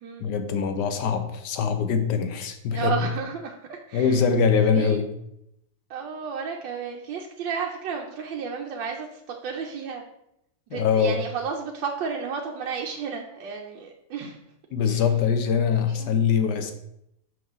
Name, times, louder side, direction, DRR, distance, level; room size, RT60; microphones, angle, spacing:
voice 1, 0.2-2.9 3.9-5.1 10.7-11.2 14.7-16.7, left 6 dB, 70° left, 7 dB, 1.3 m, -23 dB
voice 2, 2.7-4.2 4.7-5.0 5.9-10.0 10.7-14.4 14.9-15.0 15.9-16.2, right 6 dB, 85° right, 1 dB, 1.4 m, -32 dB
6.0 x 5.4 x 3.6 m, 0.79 s
omnidirectional pair, 2.0 m